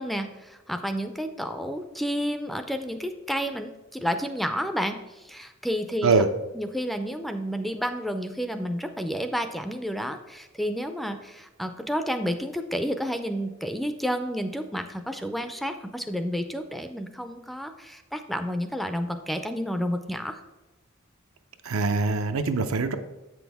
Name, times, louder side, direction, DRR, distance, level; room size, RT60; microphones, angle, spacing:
voice 1, 0.0-6.1 6.5-20.4, equal, ahead, 7 dB, 0.4 m, -30 dB
voice 2, 21.6-23.0, right 4 dB, 80° right, 8 dB, 0.6 m, -23 dB
7.6 x 6.2 x 3.4 m, 1.1 s
head